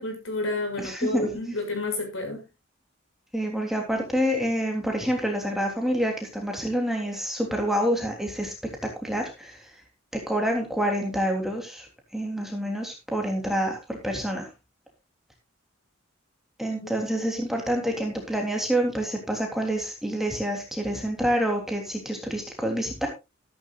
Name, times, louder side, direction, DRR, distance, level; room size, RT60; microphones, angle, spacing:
voice 1, 0.0-2.4, left 2 dB, 75° left, 6.2 m, -30 dB
voice 2, 0.8-1.3 3.3-8.5 8.8-9.7 10.1-14.5 16.6-23.1, equal, ahead, 3.2 m, -27 dB
14.0 x 13.0 x 2.5 m
head